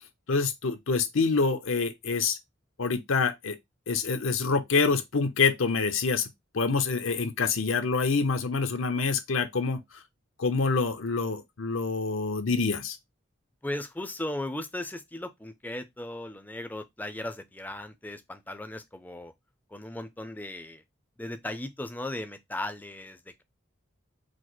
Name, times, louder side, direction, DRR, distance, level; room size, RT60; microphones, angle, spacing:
voice 1, 0.3-2.4 2.8-3.6 3.9-6.3 6.5-9.8 10.4-13.0, left 4 dB, 80° left, 0.7 m, -26 dB
voice 2, 13.6-19.3 19.7-20.8 21.2-23.4, left 1 dB, 10° left, 0.4 m, -37 dB
4.9 x 2.0 x 4.0 m
head